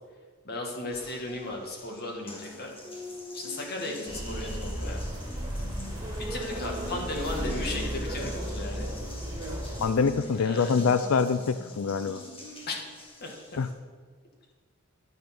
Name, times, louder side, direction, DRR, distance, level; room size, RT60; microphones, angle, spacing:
voice 1, 0.4-2.7 3.3-5.0 6.2-8.9 10.4-10.7 12.7-12.8 13.2-13.3, left 2 dB, 50° left, 0 dB, 2.0 m, -35 dB
Water tap faucet, 0.9-13.7, left 1 dB, 25° left, 1.8 m, -44 dB
sound 1, 4.1-9.9, right 1 dB, 20° right, 2.6 m, -34 dB
voice 2, 9.8-12.2 13.6-13.7, left 5 dB, 70° left, 11 dB, 0.4 m, -25 dB
11.0 x 6.8 x 6.0 m, 1.5 s
head